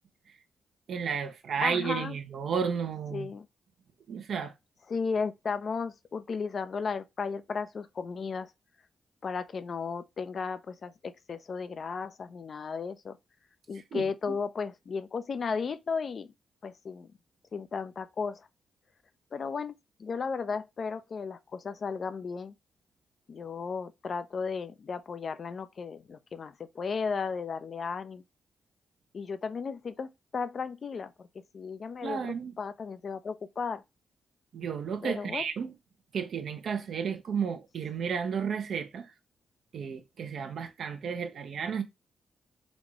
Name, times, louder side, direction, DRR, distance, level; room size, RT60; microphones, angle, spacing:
voice 1, 0.9-3.3 4.1-4.5 13.9-14.4 32.0-32.5 34.5-35.7 36.1-39.1 39.7-41.8, right 6 dB, 65° right, 0.6 m, -32 dB
voice 2, 1.6-2.2 3.1-3.5 4.9-8.5 9.2-13.2 13.7-16.3 16.6-17.1 17.5-18.5 19.3-22.5 23.3-28.2 29.1-31.3 31.5-33.8 35.0-35.4, left 5 dB, 55° left, 0.4 m, -35 dB
4.1 x 2.3 x 3.0 m
hypercardioid pair, 45°, 0 cm